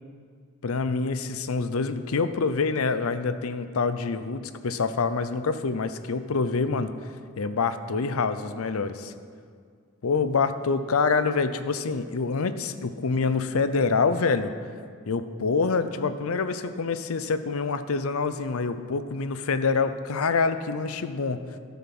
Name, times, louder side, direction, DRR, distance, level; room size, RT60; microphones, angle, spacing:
voice 1, 0.6-6.9 7.4-9.1 10.0-14.5 15.1-21.4, left 4 dB, 75° left, 12 dB, 0.6 m, -26 dB
13.0 x 7.2 x 6.0 m, 2.1 s
head